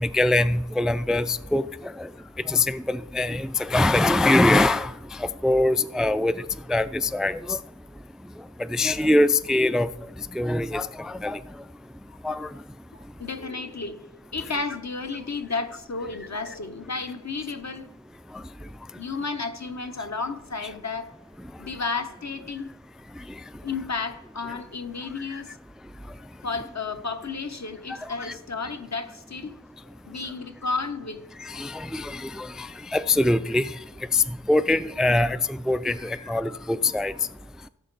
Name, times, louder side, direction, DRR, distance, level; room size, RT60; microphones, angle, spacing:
voice 1, 0.0-1.6 2.5-4.9 5.4-6.3 6.7-7.6 8.7-9.9 10.4-10.9 11.2-11.4 12.2-12.5 31.5-32.7 32.9-33.7 34.1-34.2 34.5-35.4 35.7-37.1, left 2 dB, ahead, 0.3 m, -22 dB
voice 2, 10.3-10.7 12.1-12.2 12.9-14.1 14.3-17.9 18.9-21.1 21.6-22.7 23.6-25.6 26.4-29.5 29.8-31.2 36.0-36.7 37.6-37.7, left 4 dB, 60° left, 1.0 m, -33 dB
16.5 x 6.7 x 4.0 m
wide cardioid pair, 55°, 31 cm